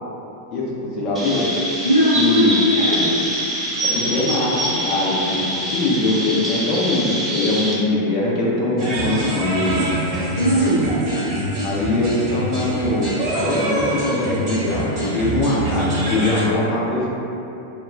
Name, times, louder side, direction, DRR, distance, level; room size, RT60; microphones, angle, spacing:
voice 1, 0.9-1.5 2.1-2.6 3.9-5.4 5.7-9.8 11.6-13.1 13.4-17.1, left 2 dB, 35° left, -6 dB, 0.6 m, -22 dB
Chirp tweet, 1.1-7.7, equal, 20° right, 0.5 m, -24 dB
voice 2, 1.8-3.3 10.4-10.9, equal, 85° left, -7 dB, 0.4 m, -19 dB
sound 1, 8.8-16.4, right 1 dB, 40° right, 0.9 m, -25 dB
2.2 x 2.2 x 3.2 m, 2.9 s
figure-of-eight pair, 90°, 0 cm